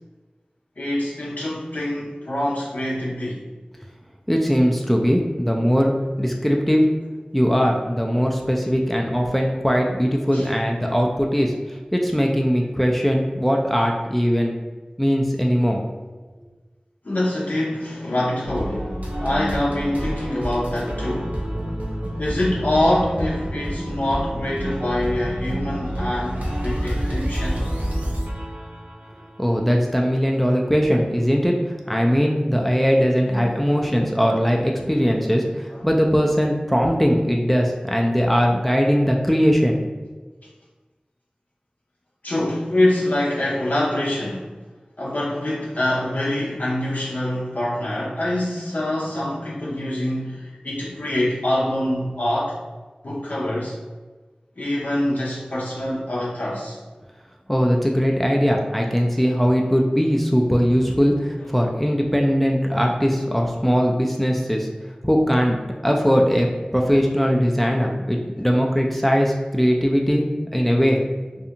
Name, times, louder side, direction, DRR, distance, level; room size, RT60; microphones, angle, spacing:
voice 1, 0.8-3.4 10.3-10.5 17.0-21.4 22.2-27.7 33.3-33.9 34.9-35.1 35.7-35.8 42.2-44.5 45.0-52.6 53.0-53.7 54.6-56.8, left 1 dB, 75° left, -5 dB, 0.5 m, -25 dB
voice 2, 4.3-6.9 7.3-14.5 15.0-15.8 29.4-31.6 31.9-39.8 57.5-64.7 65.0-65.6 65.8-70.3 70.5-71.0, equal, 5° left, 0 dB, 0.3 m, -20 dB
sound 1, 18.4-29.5, equal, 65° right, 0.5 m, -28 dB
2.5 x 2.3 x 2.7 m, 1.3 s
wide cardioid pair, 40°, 3 cm